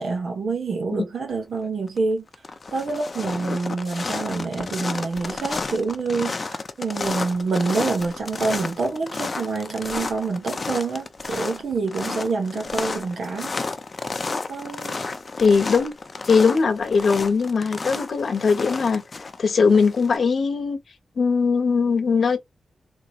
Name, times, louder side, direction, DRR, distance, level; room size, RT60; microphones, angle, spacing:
voice 1, 0.0-2.2 2.7-13.5 14.5-15.1, right 4 dB, 75° right, 1.2 m, -27 dB
sound 1, 1.6-2.0 2.3-20.2, left 3 dB, 35° left, 0.5 m, -32 dB
voice 2, 15.4-15.9 16.2-19.0 19.4-20.8 21.2-22.4, left 5 dB, 60° left, 0.9 m, -20 dB
3.7 x 3.0 x 2.4 m
wide cardioid pair, 170°, 0 cm